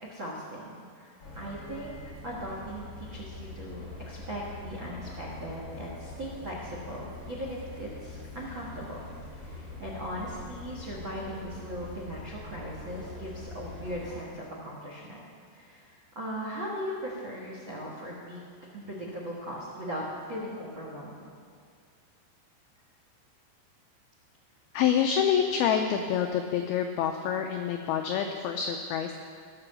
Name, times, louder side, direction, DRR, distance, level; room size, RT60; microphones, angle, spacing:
voice 1, 0.0-2.0 2.2-9.0 9.4-15.2 15.5-18.4 18.7-21.2, equal, 85° right, -3 dB, 1.0 m, -39 dB
sound 1, 1.2-14.2, left 2 dB, 30° left, 3.5 m, -43 dB
voice 2, 24.7-29.1, left 8 dB, 85° left, 5 dB, 2.2 m, -27 dB
17.0 x 5.9 x 6.8 m, 2.2 s
omnidirectional pair, 5.1 m